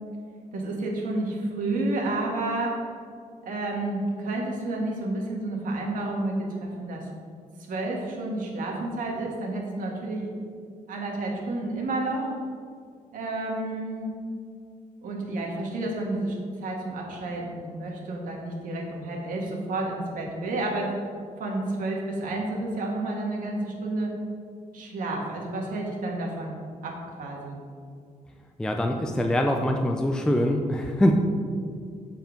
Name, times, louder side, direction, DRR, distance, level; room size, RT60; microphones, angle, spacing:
voice 1, 0.5-2.8 3.4-7.1 7.7-10.3 10.9-12.3 13.1-14.1 15.0-20.9 21.4-24.1 24.7-27.6, right 2 dB, 75° right, -1 dB, 1.7 m, -30 dB
voice 2, 28.6-31.1, left 1 dB, 5° left, 3 dB, 0.3 m, -23 dB
8.0 x 4.4 x 5.1 m, 2.2 s
wide cardioid pair, 165°, 14 cm